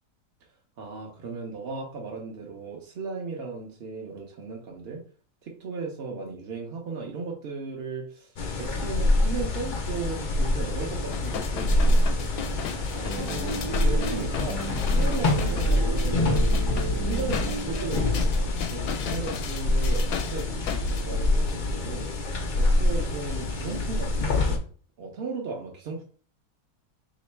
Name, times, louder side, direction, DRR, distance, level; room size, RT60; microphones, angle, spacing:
voice 1, 0.8-5.0 5.4-12.5 12.9-16.5 17.0-22.1 22.5-24.6 25.0-26.0, right 4 dB, 55° right, 0 dB, 0.7 m, -36 dB
sound 1, 8.4-24.6, left 2 dB, 65° left, 0.4 m, -25 dB
sound 2, 11.1-21.0 21.5-21.6, left 8 dB, 85° left, 1.2 m, -37 dB
sound 3, 13.1-18.2, right 6 dB, 80° right, 1.1 m, -35 dB
3.1 x 2.9 x 4.3 m, 0.42 s
omnidirectional pair, 1.7 m